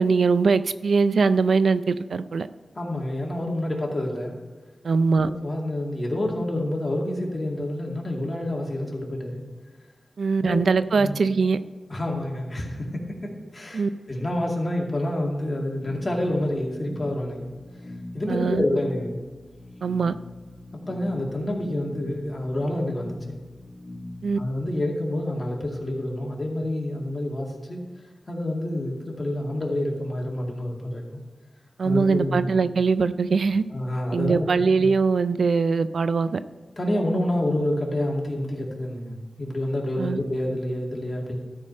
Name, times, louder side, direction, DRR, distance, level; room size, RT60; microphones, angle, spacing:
voice 1, 0.0-2.5 4.8-5.3 10.2-11.6 13.7-13.9 18.3-18.6 19.8-20.2 24.2-24.4 31.8-33.6 34.1-36.4 40.0-40.2, right 4 dB, 85° right, 13 dB, 0.4 m, -22 dB
voice 2, 2.8-4.4 5.1-9.4 10.4-10.6 11.0-11.1 11.9-17.5 18.1-19.2 20.7-23.4 24.4-27.8 28.3-31.2 31.8-32.6 33.7-34.5 34.8-34.9 36.8-41.3, left 1 dB, 35° left, -1 dB, 2.3 m, -28 dB
sound 1, 15.8-24.8, left 1 dB, 50° left, 2.4 m, -41 dB
13.0 x 4.9 x 5.5 m, 1.3 s
wide cardioid pair, 65°, 0 cm